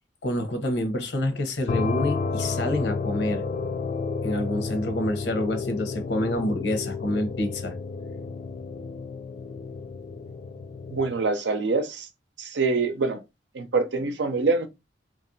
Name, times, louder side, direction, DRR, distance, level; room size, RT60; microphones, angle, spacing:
voice 1, 0.2-3.4 4.2-7.7, left 1 dB, 80° left, 0.8 m, -27 dB
sound 1, 1.7-11.2, left 4 dB, 40° left, 0.3 m, -31 dB
voice 2, 10.9-12.1 12.4-13.2 13.5-14.7, right 3 dB, 85° right, 0.6 m, -25 dB
2.8 x 2.5 x 2.7 m
head